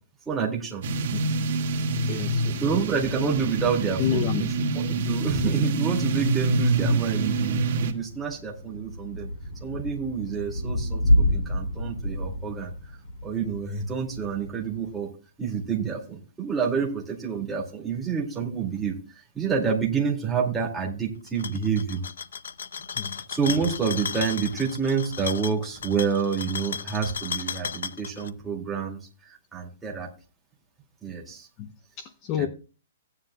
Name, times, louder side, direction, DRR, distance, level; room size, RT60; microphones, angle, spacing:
voice 1, 0.3-0.8 2.6-4.7 5.1-9.3 9.6-12.7 13.2-15.1 15.4-22.0 23.3-30.1 31.0-31.5 32.4-32.5, right 6 dB, 5° right, -4 dB, 2.3 m, -28 dB
sound 1, 0.8-7.9, right 2 dB, 45° right, 1.8 m, -26 dB
voice 2, 2.1-2.6 4.0-4.5 22.9-23.2 31.6-32.5, left 8 dB, 20° left, 7 dB, 0.6 m, -30 dB
Thunder / Rain, 6.7-14.9, equal, 40° left, 4.8 m, -29 dB
sound 2, 21.3-28.3, left 6 dB, 85° left, 0.7 m, -35 dB
16.5 x 9.9 x 2.3 m, 0.35 s
hypercardioid pair, 175°, 0 cm